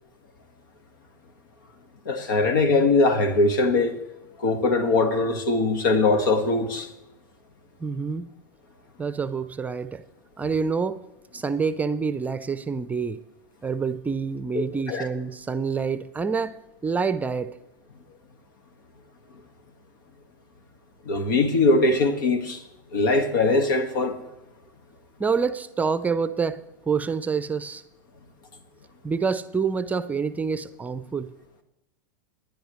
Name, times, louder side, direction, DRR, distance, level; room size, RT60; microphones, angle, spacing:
voice 1, 2.1-4.0 4.4-6.9 14.6-15.1 21.1-22.6 22.9-24.2, left 3 dB, 70° left, 1.8 m, -21 dB
voice 2, 7.8-8.3 9.0-10.0 10.4-11.0 11.3-13.2 13.6-17.5 25.2-27.8 29.0-31.3, right 5 dB, 15° right, 0.6 m, -27 dB
26.0 x 10.5 x 3.2 m
hypercardioid pair, 100°, 11 cm